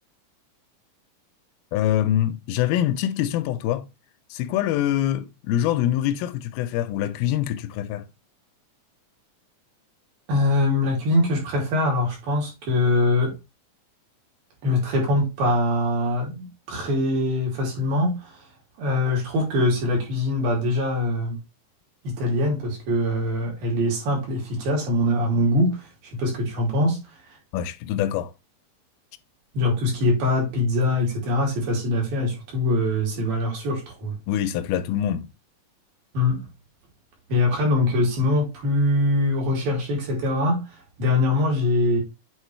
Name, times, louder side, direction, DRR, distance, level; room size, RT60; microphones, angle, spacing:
voice 1, 1.7-3.9 4.3-8.1 27.5-28.3 34.3-35.3, left 11 dB, 85° left, 2.5 m, -24 dB
voice 2, 10.3-13.3 14.6-18.3 18.8-21.4 22.0-27.0 27.3-27.4 29.5-34.2 36.1-36.5 37.3-42.0, left 1 dB, 75° right, 4.7 m, -23 dB
8.2 x 4.3 x 3.2 m
omnidirectional pair, 4.2 m